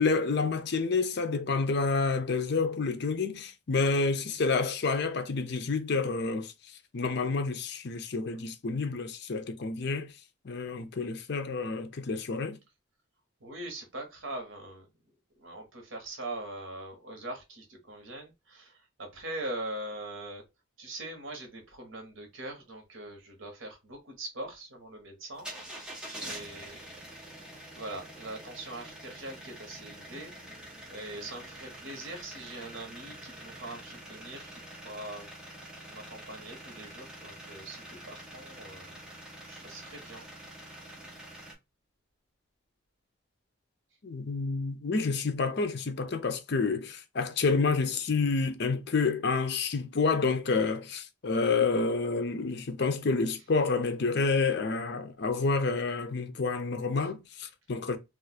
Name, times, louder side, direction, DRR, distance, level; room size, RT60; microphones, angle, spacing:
voice 1, 0.0-6.5 6.9-10.1 10.4-12.6 44.0-58.0, left 4 dB, 55° left, 0.5 m, -29 dB
voice 2, 13.4-14.8 15.4-20.4 20.8-25.5 26.1-26.8 27.7-30.3 30.9-35.3 35.9-38.9 39.5-40.3 57.0-57.1, right 1 dB, 75° right, 1.2 m, -42 dB
sound 1, 25.3-41.5, right 1 dB, 5° right, 0.8 m, -46 dB
2.6 x 2.5 x 4.1 m
head